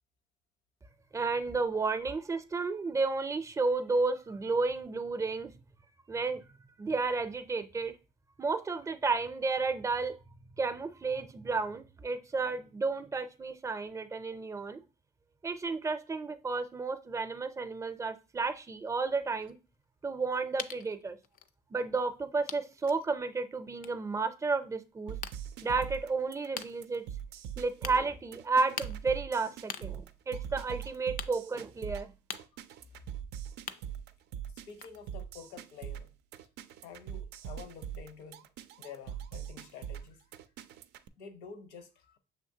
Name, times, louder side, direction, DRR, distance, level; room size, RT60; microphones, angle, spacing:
voice 1, 1.1-5.5 6.1-6.4 6.8-7.9 8.4-10.1 10.6-14.8 15.4-19.6 20.0-21.2 21.7-25.2 25.6-27.0 27.6-32.1, right 4 dB, 20° right, 0.5 m, -32 dB
sound 1, 19.0-21.6 22.1-22.2 22.5-23.1 23.7-24.1 24.6-25.4 26.0-26.1 26.6-26.7 27.5-27.6 27.8-28.0 28.8-34.3 34.6-35.0, left 9 dB, 55° left, 0.4 m, -44 dB
sound 2, 25.1-41.1, right 9 dB, 80° right, 0.4 m, -42 dB
voice 2, 34.5-36.2 36.8-38.5 38.8-40.3 41.2-42.2, left 6 dB, 90° left, 0.8 m, -49 dB
6.4 x 2.9 x 2.7 m
cardioid pair, 110°, 17 cm